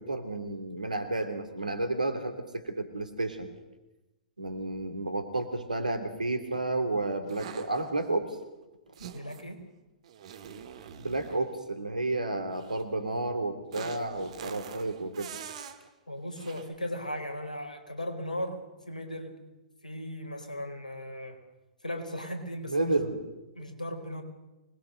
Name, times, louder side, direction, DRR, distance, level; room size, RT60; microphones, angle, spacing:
voice 1, 0.0-3.5 4.4-8.4 11.0-15.3 22.6-23.2, right 2 dB, 80° right, 8 dB, 3.2 m, -31 dB
sound 1, 7.3-8.1 8.9-9.5 10.0-11.5 12.5-12.8 13.7-15.8 16.4-16.7, right 8 dB, 55° right, 2.1 m, -44 dB
voice 2, 9.1-9.6 16.1-19.3 19.8-21.4 21.8-22.9 23.5-24.2, left 1 dB, 85° left, 6 dB, 4.3 m, -37 dB
25.0 x 20.5 x 6.6 m, 1.0 s
figure-of-eight pair, 110°, 4 cm